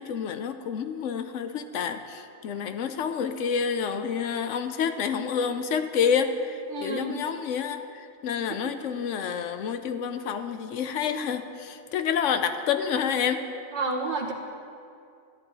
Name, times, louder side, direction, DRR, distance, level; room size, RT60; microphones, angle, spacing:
voice 1, 0.0-13.5, left 7 dB, 75° left, 9 dB, 1.0 m, -28 dB
voice 2, 6.7-7.1 8.6-8.8 13.7-14.3, right 3 dB, 60° right, 1 dB, 1.4 m, -30 dB
13.0 x 10.5 x 4.0 m, 2.4 s
omnidirectional pair, 1.3 m